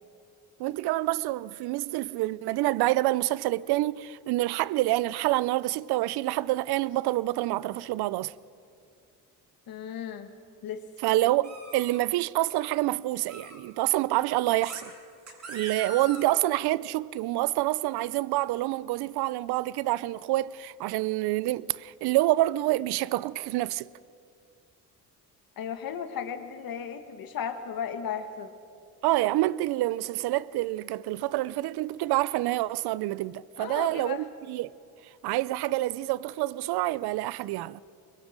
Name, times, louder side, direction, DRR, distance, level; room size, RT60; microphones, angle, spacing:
voice 1, 0.6-8.3 11.0-14.9 15.5-23.9 29.0-34.7 35.2-37.8, right 17 dB, 85° right, 0.5 m, -27 dB
voice 2, 9.7-10.3 10.6-10.8 25.6-28.5 33.6-34.3, left 7 dB, 65° left, 1.8 m, -35 dB
sound 1, 11.4-12.0 13.3-13.6 14.6-14.8 15.3-16.4, right 3 dB, 45° right, 6.5 m, -41 dB
24.5 x 22.5 x 5.1 m
cardioid pair, 90°, 38 cm